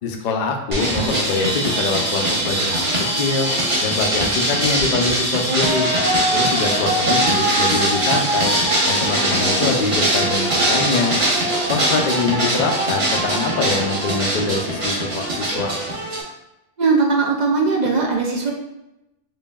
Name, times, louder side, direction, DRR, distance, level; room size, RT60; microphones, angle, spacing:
voice 1, 0.0-3.5 3.8-5.9 6.3-8.5 8.9-11.2 11.7-15.7, left 4 dB, 60° left, 3 dB, 0.5 m, -24 dB
sound 1, 0.7-16.2, right 1 dB, 30° right, 0.7 m, -21 dB
voice 2, 16.8-18.5, right 4 dB, 60° right, 0 dB, 0.4 m, -19 dB
5.0 x 2.6 x 2.3 m, 0.92 s
omnidirectional pair, 1.3 m